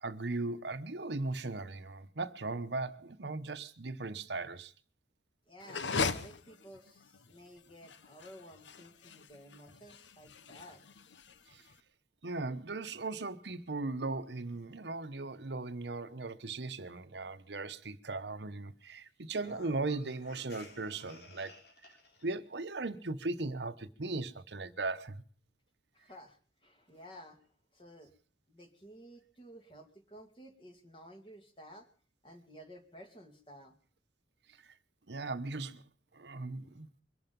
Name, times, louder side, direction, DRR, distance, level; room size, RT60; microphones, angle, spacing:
voice 1, 0.0-4.7 11.5-11.6 12.2-21.5 22.2-25.2 35.1-35.8 36.1-36.9, right 3 dB, 70° right, 1.0 m, -38 dB
voice 2, 5.5-10.9 25.9-28.1 28.5-31.9 32.2-33.7, equal, 30° left, 2.5 m, -54 dB
sound 1, 5.6-11.7, left 4 dB, 85° left, 1.0 m, -39 dB
sound 2, 19.3-22.3, left 2 dB, 60° left, 3.5 m, -54 dB
23.0 x 12.0 x 5.3 m
head